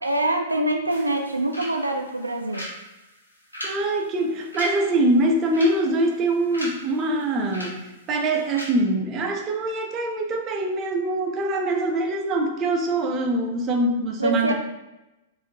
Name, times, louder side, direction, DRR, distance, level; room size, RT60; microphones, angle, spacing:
voice 1, 0.0-2.7 14.2-14.5, right 1 dB, 85° right, 3 dB, 0.3 m, -24 dB
sound 1, 0.9-8.6, equal, 80° left, 1.1 m, -40 dB
voice 2, 3.6-14.5, right 2 dB, 30° right, 3 dB, 0.5 m, -23 dB
3.5 x 2.6 x 2.7 m, 0.97 s
figure-of-eight pair, 105°, 0 cm